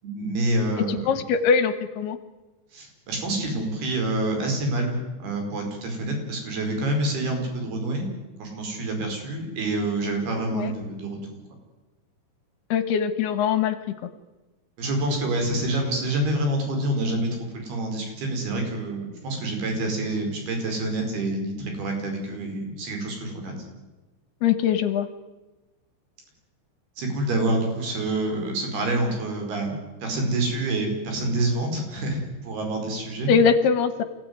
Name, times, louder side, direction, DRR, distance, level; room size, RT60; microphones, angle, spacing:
voice 1, 0.0-1.0 2.7-8.1 8.4-11.2 14.8-23.5 27.0-33.3, right 1 dB, 55° right, 3 dB, 6.6 m, -27 dB
voice 2, 0.8-2.2 10.5-10.7 12.7-13.8 24.4-25.1 33.3-34.0, left 6 dB, 70° left, 11 dB, 2.8 m, -22 dB
27.0 x 17.0 x 9.5 m, 1.2 s
omnidirectional pair, 5.4 m